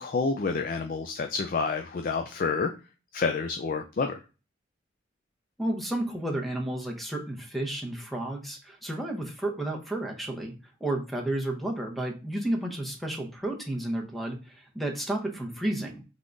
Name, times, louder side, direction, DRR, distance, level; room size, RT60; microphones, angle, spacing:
voice 1, 0.0-2.7 3.1-4.2, left 4 dB, 45° left, 5 dB, 0.4 m, -28 dB
voice 2, 5.6-10.5 10.8-16.0, right 1 dB, ahead, 2 dB, 0.8 m, -32 dB
3.7 x 3.5 x 3.8 m, 0.33 s
head